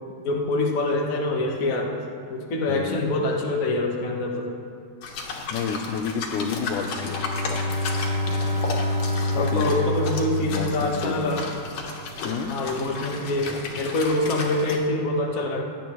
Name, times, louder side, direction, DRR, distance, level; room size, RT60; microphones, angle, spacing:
voice 1, 0.2-1.9 2.3-4.5 9.3-11.5 12.5-15.6, left 2 dB, 50° left, 0 dB, 1.0 m, -25 dB
voice 2, 2.7-3.1 5.5-7.3 9.3-9.7 10.4-11.5 12.2-12.6, left 6 dB, 85° left, 7 dB, 2.2 m, -30 dB
sound 1, 5.0-14.8, left 3 dB, 70° left, 2.6 m, -34 dB
Bowed string instrument, 6.7-11.5, left 2 dB, 45° right, 1.8 m, -27 dB
18.5 x 10.5 x 3.1 m, 2.5 s
omnidirectional pair, 3.4 m